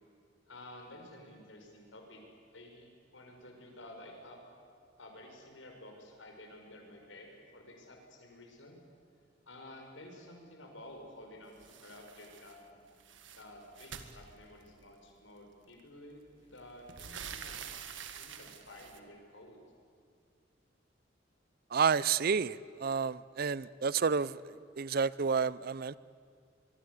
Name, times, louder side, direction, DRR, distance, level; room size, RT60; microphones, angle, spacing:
voice 1, 0.5-2.2 2.5-4.4 5.0-8.8 9.5-13.0 13.4-17.7 18.2-19.6, left 1 dB, 90° left, 2 dB, 5.5 m, -52 dB
sound 1, 11.6-12.6 12.9-14.8 15.8-15.9 16.3-19.0, right 7 dB, 80° right, 1.7 m, -47 dB
voice 2, 21.7-26.0, right 6 dB, 55° right, 19 dB, 0.5 m, -30 dB
24.0 x 22.5 x 8.4 m, 2.1 s
head